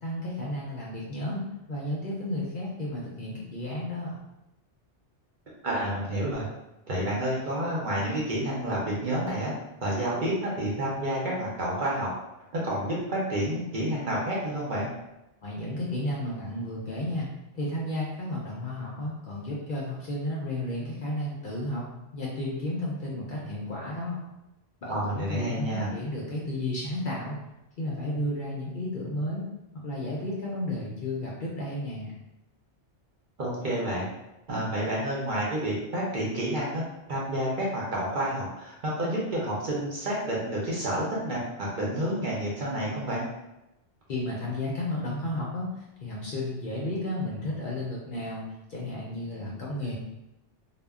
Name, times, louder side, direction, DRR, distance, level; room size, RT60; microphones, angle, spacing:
voice 1, 0.0-4.2 15.4-17.3 17.5-21.8 22.1-24.2 24.8-27.4 27.8-29.5 29.7-32.1 44.1-45.7 46.0-48.4 48.7-49.9, left 1 dB, 60° left, -4 dB, 0.6 m, -32 dB
voice 2, 5.6-6.4 6.9-9.5 9.8-12.1 12.5-14.9 24.9-25.9 33.4-34.1 34.5-36.8 37.1-43.2, right 1 dB, 50° right, -5 dB, 0.7 m, -29 dB
2.1 x 2.1 x 3.5 m, 0.95 s
omnidirectional pair, 1.2 m